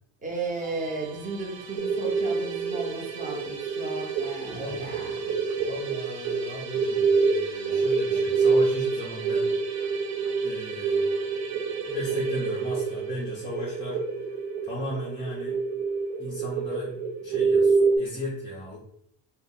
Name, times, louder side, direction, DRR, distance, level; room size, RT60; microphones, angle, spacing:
voice 1, 0.2-5.7, right 3 dB, 15° right, -2 dB, 0.8 m, -35 dB
Musical instrument, 0.6-15.8, right 6 dB, 50° right, 0.7 m, -43 dB
sound 1, 1.8-18.0, right 4 dB, 90° right, 0.5 m, -27 dB
voice 2, 4.4-5.0 5.6-9.5 10.4-11.0 11.9-14.0 14.3-14.4 14.6-15.6 16.2-18.8, left 1 dB, 10° left, -5 dB, 0.5 m, -36 dB
2.6 x 2.1 x 3.7 m, 0.74 s
cardioid pair, 115°, 45 cm